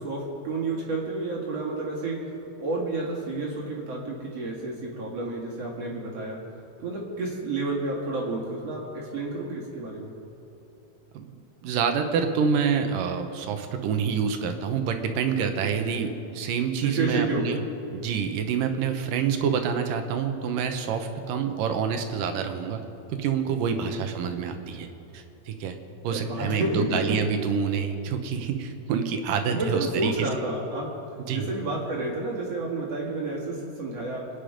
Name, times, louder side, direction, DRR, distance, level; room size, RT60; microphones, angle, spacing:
voice 1, 0.0-2.2 2.6-6.4 6.8-10.1 15.4-15.5 15.8-15.9 16.8-17.6 23.6-24.0 26.1-27.2 29.5-30.9 31.3-34.3, right 2 dB, 50° right, -3 dB, 3.0 m, -30 dB
voice 2, 11.6-17.6 17.9-22.8 23.1-24.9 25.1-25.8 26.0-30.3 31.3-31.5, right 6 dB, 80° right, 7 dB, 2.7 m, -27 dB
26.0 x 9.8 x 5.1 m, 2.9 s
omnidirectional pair, 3.8 m